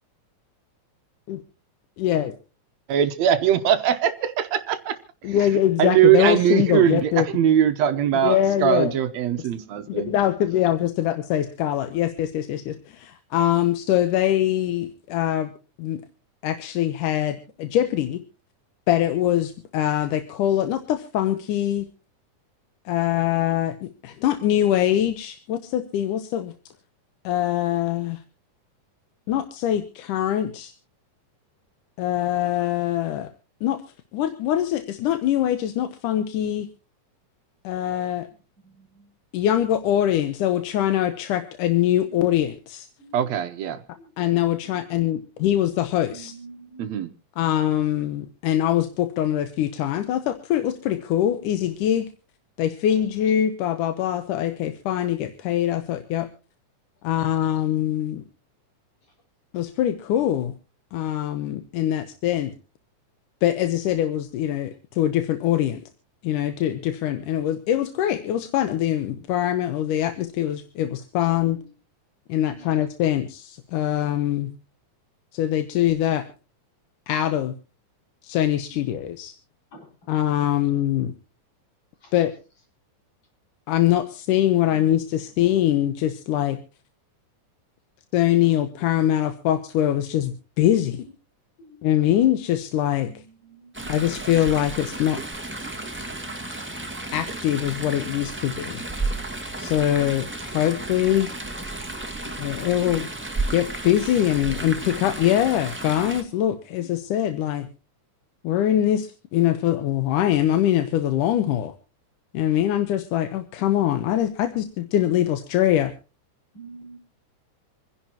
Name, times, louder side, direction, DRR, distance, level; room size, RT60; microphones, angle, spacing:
voice 1, 2.0-2.3 5.2-7.3 8.2-8.9 9.9-15.5 15.8-16.0 16.4-18.2 18.9-21.9 22.9-26.5 27.2-28.2 29.3-30.7 32.0-33.3 33.6-33.8 34.1-36.7 37.6-38.3 39.3-42.9 44.2-46.3 47.4-52.1 52.6-56.3 57.0-58.2 59.5-60.5 60.9-62.5 63.4-65.8 66.2-71.6 72.3-74.5 75.3-76.3 77.1-77.5 78.2-79.3 80.1-81.1 82.1-82.3 83.7-86.6 88.1-91.1 91.8-93.2 93.9-95.2 97.1-98.8 99.6-101.3 102.4-103.1 103.5-107.7 108.4-111.7 112.3-115.9, left 12 dB, 90° left, 2.5 m, -23 dB
voice 2, 2.9-5.0 5.3-5.5 5.8-10.1 43.1-43.8 46.8-47.1, right 10 dB, 70° right, 2.0 m, -21 dB
voice 3, 44.8-45.2 46.1-46.9 71.2-71.3 72.5-72.8 79.7-79.8 82.0-82.1 91.6-91.9 93.1-93.2 93.4-94.0 106.8-106.9 116.5-117.0, right 3 dB, 55° left, 6.4 m, -46 dB
Chatter / Stream, 93.7-106.2, right 2 dB, 10° right, 0.6 m, -33 dB
27.5 x 10.5 x 2.9 m
omnidirectional pair, 3.6 m